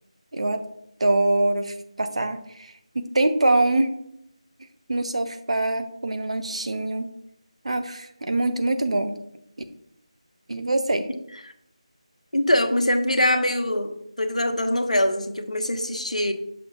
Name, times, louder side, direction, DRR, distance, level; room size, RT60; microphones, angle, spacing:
voice 1, 0.3-0.6 1.0-3.9 4.9-7.1 7.6-9.2 10.5-11.1, right 2 dB, 60° right, 7 dB, 0.6 m, -24 dB
voice 2, 12.3-13.9 14.2-16.3, left 1 dB, 85° left, 5 dB, 0.8 m, -23 dB
6.7 x 6.4 x 2.3 m, 0.77 s
figure-of-eight pair, 160°, 4 cm